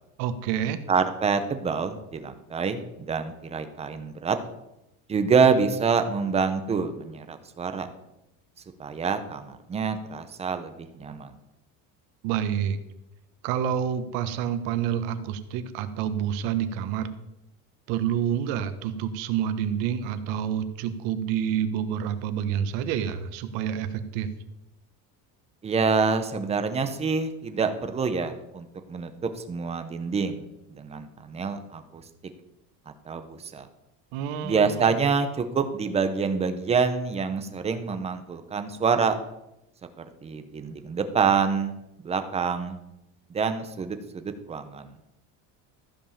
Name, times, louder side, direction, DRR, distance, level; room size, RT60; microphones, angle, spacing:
voice 1, 0.2-0.8 12.2-12.8 13.4-17.1 17.9-24.3 34.1-34.9, right 9 dB, 85° right, 10 dB, 1.3 m, -28 dB
voice 2, 0.9-4.4 5.1-7.9 8.8-11.3 25.6-32.0 33.0-33.7 34.4-39.1 40.2-41.7 42.0-42.8 43.3-44.9, right 5 dB, 15° right, 9 dB, 0.8 m, -26 dB
14.0 x 5.3 x 7.3 m, 0.89 s
cardioid pair, 175°, 36 cm